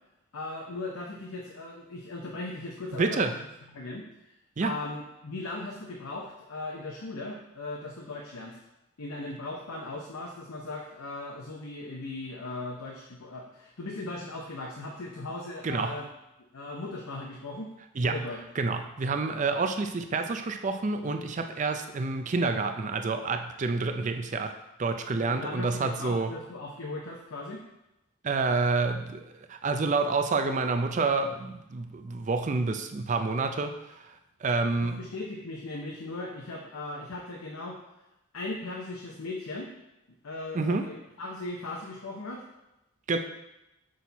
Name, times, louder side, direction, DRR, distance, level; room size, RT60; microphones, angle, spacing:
voice 1, 0.3-3.3 3.7-4.3 4.6-8.6 9.0-16.1 16.5-17.7 18.0-18.4 25.3-27.6 34.6-37.8 38.3-39.7 40.2-42.4, left 2 dB, 85° left, -1 dB, 0.8 m, -38 dB
voice 2, 3.0-3.3 4.6-4.7 15.6-16.0 18.0-18.3 18.6-24.5 24.8-26.3 28.2-29.2 29.5-34.2 34.4-35.0 40.5-40.9 43.1-43.2, right 3 dB, 35° right, 7 dB, 0.4 m, -28 dB
6.3 x 4.2 x 4.0 m, 0.90 s
head